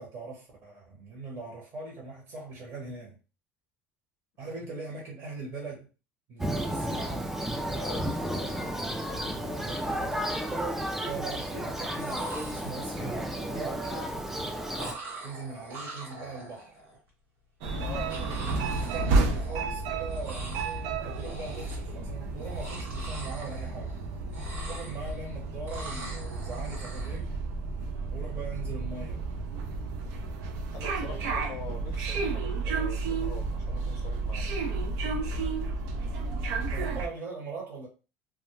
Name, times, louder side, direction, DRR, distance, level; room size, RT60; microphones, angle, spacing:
voice 1, 0.0-3.2 4.4-5.9 6.3-7.3 8.8-9.1 11.0-14.1 15.2-16.8 18.8-23.9 24.7-27.5 28.1-29.3 31.0-31.3 36.6-37.9, right 3 dB, 50° right, 1.0 m, -41 dB
Thunder, 6.4-14.9, right 1 dB, 5° right, 0.4 m, -32 dB
voice 2, 7.7-10.4 17.8-18.2 30.7-34.5, left 6 dB, 55° left, 0.5 m, -44 dB
sound 1, 12.0-13.2 14.8-17.0 18.1-19.8 20.1-20.8 21.1-21.9 22.4-24.0 24.3-25.3 25.7-27.2, right 2 dB, 90° right, 1.4 m, -43 dB
sound 2, 17.6-37.1, right 3 dB, 70° right, 0.5 m, -32 dB
2.3 x 2.1 x 3.0 m
supercardioid pair, 100°, 6 cm